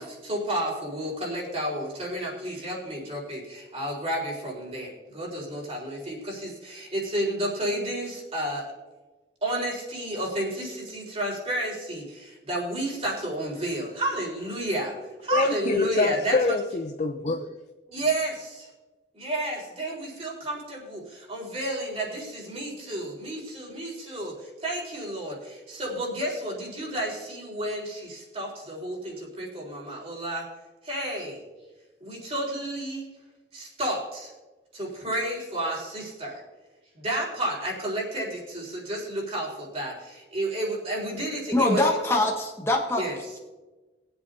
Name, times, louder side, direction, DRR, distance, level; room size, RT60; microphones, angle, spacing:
voice 1, 0.0-8.7 9.4-14.9 15.2-16.5 17.9-18.7 19.1-30.5 30.8-31.4 32.0-33.1 33.5-34.3 34.7-36.4 36.9-41.8 43.0-43.2, right 1 dB, 35° right, -3 dB, 4.1 m, -31 dB
voice 2, 15.3-17.5, left 3 dB, 40° left, 5 dB, 0.5 m, -25 dB
voice 3, 41.5-43.0, left 2 dB, 15° left, 0 dB, 1.0 m, -23 dB
22.0 x 8.0 x 2.7 m, 1.2 s
head